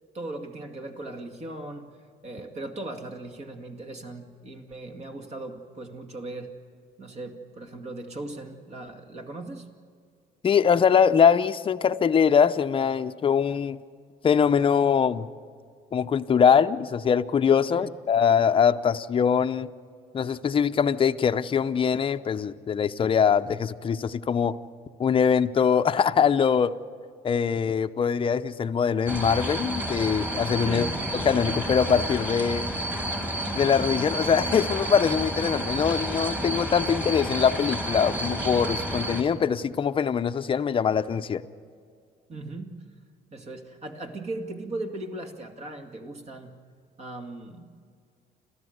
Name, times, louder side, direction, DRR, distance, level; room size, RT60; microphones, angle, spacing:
voice 1, 0.1-1.9 2.2-6.5 7.0-9.7 17.7-17.9 30.6-31.0 42.3-42.8 43.3-46.5 47.0-47.8, right 2 dB, 40° right, 5 dB, 2.2 m, -38 dB
voice 2, 10.4-13.8 14.2-15.3 15.9-19.7 20.1-24.6 25.0-26.8 27.2-30.9 31.2-32.7 33.5-41.4, left 7 dB, 30° left, 9 dB, 0.7 m, -22 dB
sound 1, 29.1-39.2, right 1 dB, 10° right, 2.9 m, -30 dB
30.0 x 13.5 x 8.0 m, 2.1 s
cardioid pair, 110°, 17 cm